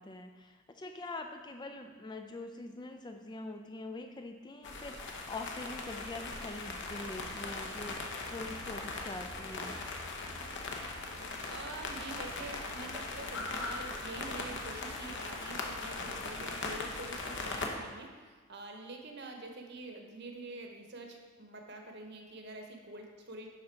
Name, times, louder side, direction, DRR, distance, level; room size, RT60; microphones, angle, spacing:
voice 1, 0.0-9.8, left 2 dB, 20° left, 6 dB, 0.3 m, -44 dB
sound 1, 4.6-17.7, left 3 dB, 55° left, 0.9 m, -39 dB
voice 2, 11.5-23.5, right 2 dB, 50° right, 2 dB, 1.0 m, -46 dB
11.0 x 3.9 x 4.4 m, 1.5 s
head